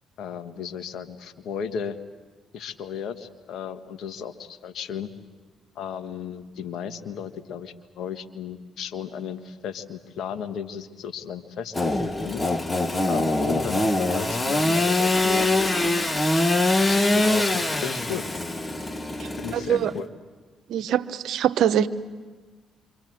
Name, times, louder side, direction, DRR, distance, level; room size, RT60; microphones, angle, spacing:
voice 1, 0.2-2.0 2.5-5.1 5.7-12.4 13.1-15.8 16.3-18.3 19.4-20.1, left 7 dB, 65° left, 8 dB, 1.6 m, -35 dB
Engine / Sawing, 11.7-20.0, left 2 dB, 25° left, 1.4 m, -23 dB
voice 2, 19.2-19.9 20.7-21.9, right 10 dB, 70° right, 11 dB, 1.0 m, -24 dB
27.5 x 25.5 x 7.9 m, 1.4 s
hypercardioid pair, 50°, 0 cm